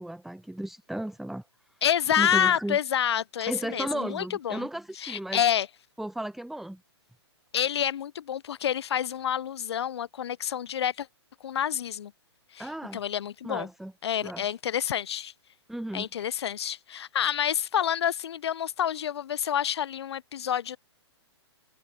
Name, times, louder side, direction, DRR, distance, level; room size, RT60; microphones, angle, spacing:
voice 1, 0.0-1.4 2.2-2.8 3.4-5.4 6.0-6.8 12.6-13.0 13.4-13.9 14.2-14.4 15.7-16.1, right 1 dB, ahead, 0.9 m, -34 dB
voice 2, 1.8-4.7 5.0-5.7 7.5-11.1 11.4-12.1 12.5-12.7 12.9-13.7 14.0-15.3 15.9-20.8, left 9 dB, 70° left, 0.4 m, -28 dB
hypercardioid pair, 125°, 14 cm